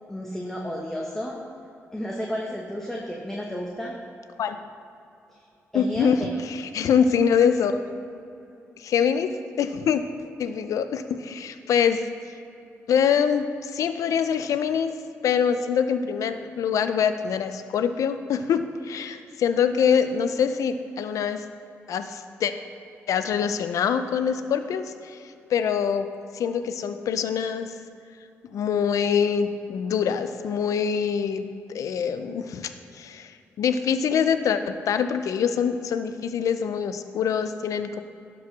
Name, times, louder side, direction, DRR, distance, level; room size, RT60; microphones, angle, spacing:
voice 1, 0.1-1.4 1.9-3.9 5.3-5.4 5.7-6.4, equal, 10° left, -2 dB, 1.2 m, -32 dB
voice 2, 5.7-7.8 8.8-9.3 9.6-10.0 10.4-12.0 12.9-14.9 15.2-21.4 21.9-22.5 23.1-25.2 25.5-26.1 26.3-27.7 28.5-33.3 33.6-38.0, left 7 dB, 75° left, 10 dB, 0.6 m, -24 dB
11.0 x 4.7 x 6.1 m, 2.7 s
cardioid pair, 65°, 6 cm